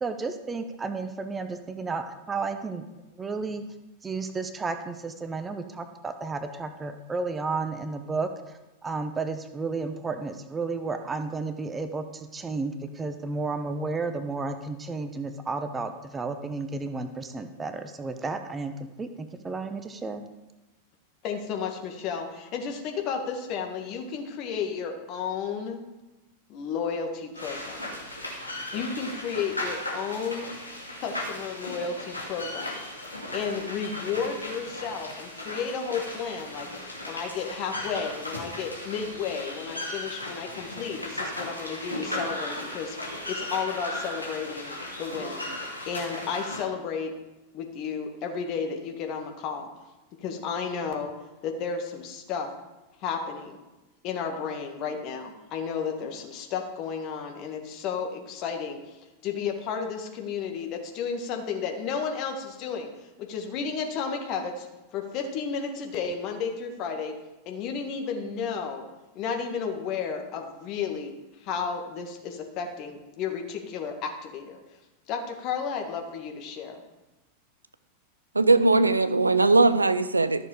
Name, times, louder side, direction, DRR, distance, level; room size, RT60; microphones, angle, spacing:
voice 1, 0.0-2.9 3.1-3.6 4.0-18.7 19.0-20.3, right 4 dB, 15° right, 8 dB, 0.9 m, -32 dB
voice 2, 21.2-25.8 26.5-27.9 28.7-30.5 31.0-45.5 45.9-47.1 47.5-49.7 50.2-51.1 51.4-52.5 53.0-53.6 54.0-58.8 59.2-64.7 64.9-67.1 67.5-68.8 69.2-71.1 71.4-74.6 75.1-76.8, left 6 dB, 40° left, 3 dB, 1.8 m, -32 dB
sound 1, 27.4-46.6, left 1 dB, 85° left, 2.2 m, -36 dB
voice 3, 78.3-80.5, right 3 dB, 80° right, 13 dB, 0.5 m, -20 dB
13.5 x 6.7 x 5.0 m, 1.0 s
figure-of-eight pair, 90°, 0 cm